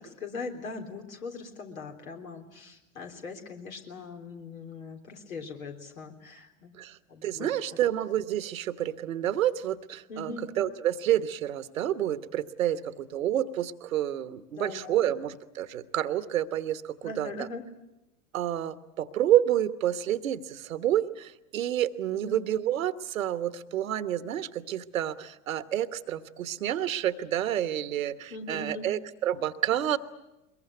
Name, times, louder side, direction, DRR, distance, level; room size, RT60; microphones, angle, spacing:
voice 1, 0.0-6.8 7.1-7.5 10.1-10.4 14.5-15.0 17.0-17.6 22.1-22.4 28.3-28.9, left 4 dB, 80° left, 3 dB, 3.7 m, -40 dB
voice 2, 6.8-17.5 18.3-30.0, right 11 dB, 75° right, 13 dB, 1.3 m, -29 dB
22.5 x 22.0 x 9.4 m, 0.94 s
hypercardioid pair, 90°, 41 cm